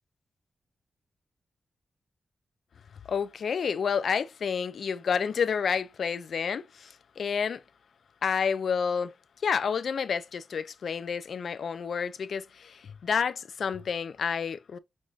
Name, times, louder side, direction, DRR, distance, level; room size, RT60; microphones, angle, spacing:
voice 1, 3.1-7.6 8.2-9.1 9.4-14.8, left 6 dB, 70° left, 0.4 m, -29 dB
5.3 x 3.2 x 2.4 m
wide cardioid pair, 155°, 0 cm